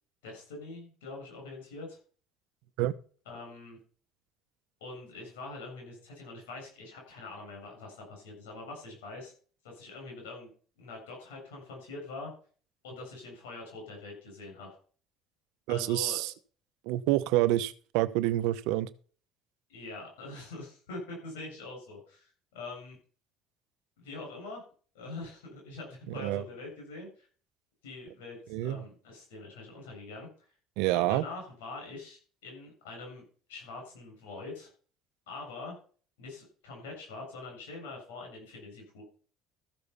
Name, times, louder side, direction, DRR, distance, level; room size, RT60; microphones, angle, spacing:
voice 1, 0.2-2.0 3.3-3.8 4.8-9.3 9.6-10.5 10.8-12.3 12.8-14.8 15.7-16.2 19.7-23.0 24.0-24.6 24.9-27.3 27.8-30.3 30.9-34.7 35.3-35.8 36.2-39.0, left 3 dB, 90° left, 1 dB, 7.3 m, -44 dB
voice 2, 15.7-16.3 16.9-18.9 26.2-26.4 28.5-28.8 30.8-31.2, right 15 dB, 75° right, 14 dB, 0.8 m, -27 dB
14.0 x 6.8 x 5.6 m, 0.42 s
supercardioid pair, 80°, 0 cm